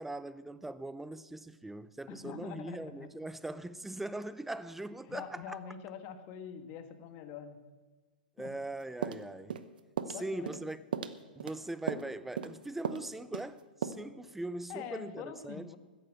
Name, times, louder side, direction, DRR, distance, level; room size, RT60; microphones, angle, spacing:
voice 1, 0.0-5.6 8.4-9.6 10.1-10.8 11.4-15.8, right 2 dB, 5° right, 0.6 m, -41 dB
voice 2, 2.1-3.1 5.0-7.6 8.4-8.6 10.1-10.6 14.7-15.8, left 8 dB, 40° left, 1.6 m, -44 dB
sound 1, 9.0-9.7 10.0-10.2 10.5-10.7 10.9-11.6 11.9-12.1 12.4-12.6 12.8-13.1 13.3-13.5 13.8-13.9, right 7 dB, 70° right, 0.9 m, -36 dB
14.0 x 10.0 x 7.7 m
hypercardioid pair, 120°, 5 cm